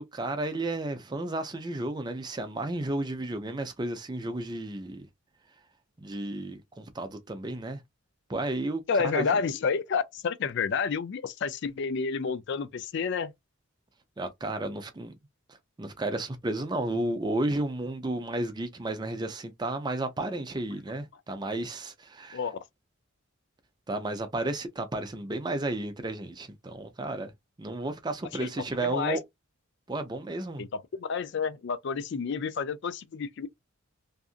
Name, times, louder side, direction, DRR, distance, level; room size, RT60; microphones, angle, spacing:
voice 1, 0.0-5.1 6.0-7.8 8.3-8.8 9.1-9.3 14.2-15.1 15.8-22.4 23.9-27.3 27.6-29.2 29.9-30.7, right 2 dB, 20° right, 0.5 m, -32 dB
voice 2, 8.9-13.3 22.3-22.6 28.4-28.5 28.8-29.2 30.6-33.5, left 5 dB, 55° left, 0.4 m, -30 dB
2.7 x 2.4 x 2.4 m
head